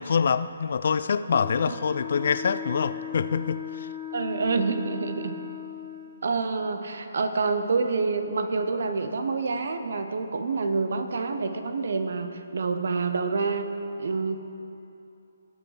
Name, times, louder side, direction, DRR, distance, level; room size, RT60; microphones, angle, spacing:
voice 1, 0.0-3.9, left 6 dB, 55° left, 14 dB, 0.3 m, -25 dB
Wind instrument woodwind instrument, 1.3-6.2, left 9 dB, 15° left, 1.3 m, -37 dB
voice 2, 4.1-5.4 6.2-13.7 14.0-14.4, right 4 dB, 60° right, 8 dB, 0.8 m, -27 dB
18.0 x 6.4 x 3.3 m, 2.8 s
figure-of-eight pair, 140°, 0 cm